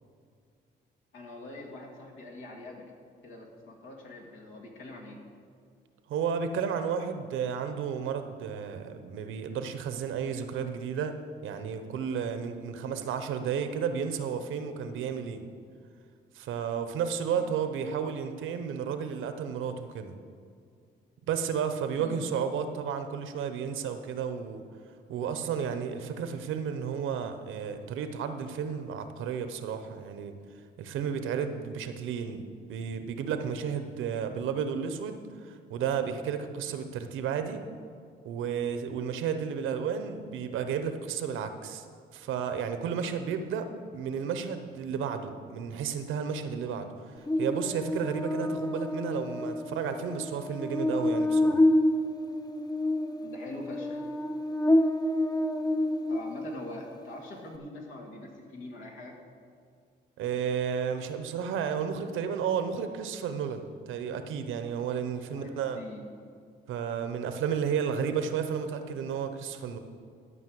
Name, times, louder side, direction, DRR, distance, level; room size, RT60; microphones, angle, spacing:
voice 1, 1.1-2.9 3.2-5.2 12.7-13.0 17.3-17.6 21.9-22.2 53.2-54.1 56.1-59.2 65.3-66.0, left 2 dB, 80° left, 0 dB, 2.1 m, -44 dB
voice 2, 6.1-11.1 11.4-15.4 16.3-20.1 21.3-24.6 25.1-30.3 30.8-32.4 32.7-37.6 38.2-41.8 42.1-43.7 43.9-46.9 47.4-51.6 60.2-65.8 66.7-69.8, right 7 dB, 85° right, 8 dB, 0.9 m, -32 dB
Buzz, 47.3-56.7, left 1 dB, 20° left, 0.7 m, -28 dB
12.5 x 5.6 x 7.7 m, 2.2 s
cardioid pair, 90°, 20 cm